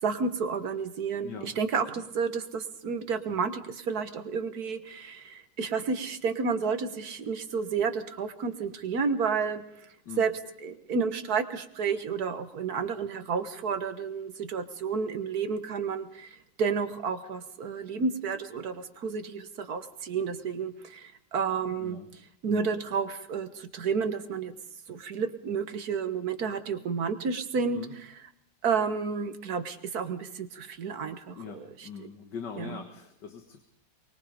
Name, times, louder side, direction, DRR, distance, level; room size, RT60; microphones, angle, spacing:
voice 1, 0.0-9.6 10.2-10.3 10.6-22.0 22.4-24.5 24.9-27.9 28.6-32.1 32.6-32.8, right 5 dB, 50° right, 9 dB, 1.7 m, -31 dB
voice 2, 1.2-1.5 10.1-10.2 21.8-22.1 27.6-27.9 31.4-33.6, left 7 dB, 60° left, 6 dB, 2.1 m, -41 dB
24.0 x 21.5 x 5.2 m, 0.69 s
omnidirectional pair, 2.2 m